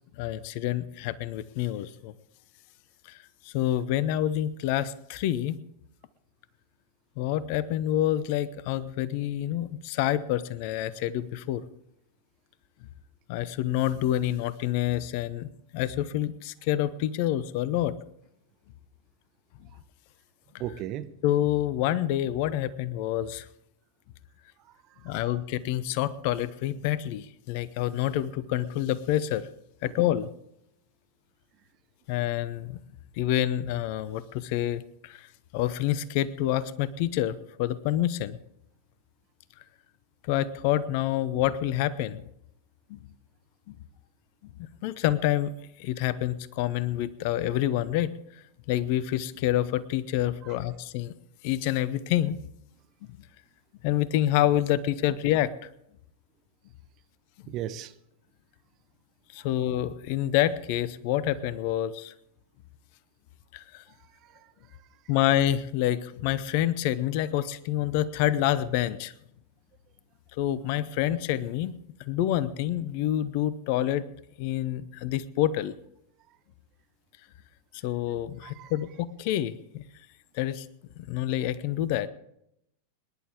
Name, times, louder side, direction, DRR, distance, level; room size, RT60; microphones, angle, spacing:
voice 1, 0.2-2.1 3.1-3.2 3.5-5.6 7.2-11.6 13.3-17.9 21.2-23.5 25.0-29.4 29.8-30.3 32.1-32.8 33.2-35.3 35.5-38.4 40.3-42.2 42.9-43.0 43.7-43.8 44.8-45.5 45.8-48.1 48.7-51.1 51.4-52.4 53.8-55.5 59.3-62.1 63.5-63.8 65.1-69.1 70.4-71.7 72.1-74.0 74.4-75.7 77.8-79.8 80.4-80.7 81.1-82.1, left 12 dB, 45° left, 18 dB, 0.8 m, -27 dB
voice 2, 20.6-21.1 24.6-24.7 25.0-25.4 29.8-29.9 50.4-50.5 57.5-57.9 64.2-64.5 78.4-78.7, right 12 dB, 35° right, 10 dB, 1.1 m, -37 dB
26.0 x 11.0 x 3.6 m, 0.78 s
figure-of-eight pair, 90°, 0 cm